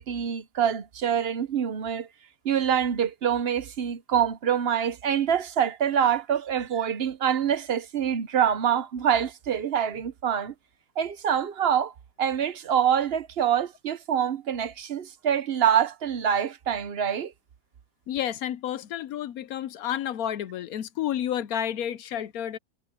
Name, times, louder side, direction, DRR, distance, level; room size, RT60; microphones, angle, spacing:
voice 1, 0.0-2.1 2.4-10.5 11.0-11.9 12.2-17.3, right 8 dB, 55° right, 0.7 m, -25 dB
voice 2, 18.1-22.6, left 10 dB, 65° left, 1.0 m, -30 dB
omnidirectional pair, 1.8 m